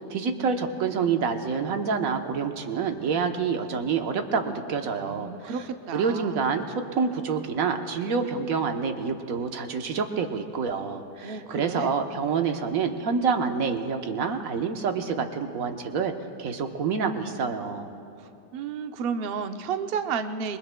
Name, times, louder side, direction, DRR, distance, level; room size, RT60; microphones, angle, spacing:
voice 1, 0.1-5.5 5.9-16.1 16.4-17.9, right 5 dB, 60° right, 5 dB, 1.2 m, -27 dB
voice 2, 5.0-6.6 11.2-11.9 18.5-20.6, right 6 dB, 85° right, 8 dB, 0.5 m, -32 dB
27.0 x 22.5 x 2.2 m, 2.7 s
omnidirectional pair, 1.8 m